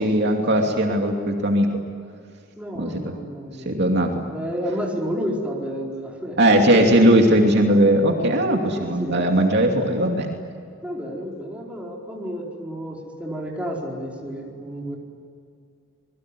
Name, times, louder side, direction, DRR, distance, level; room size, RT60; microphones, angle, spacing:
voice 1, 0.0-1.7 2.7-3.1 3.6-4.2 6.4-10.3, right 1 dB, 55° right, 2 dB, 2.7 m, -18 dB
voice 2, 2.6-3.9 4.3-6.4 8.6-9.2 10.8-15.0, equal, 5° right, -2 dB, 4.5 m, -31 dB
27.0 x 22.0 x 10.0 m, 2.4 s
head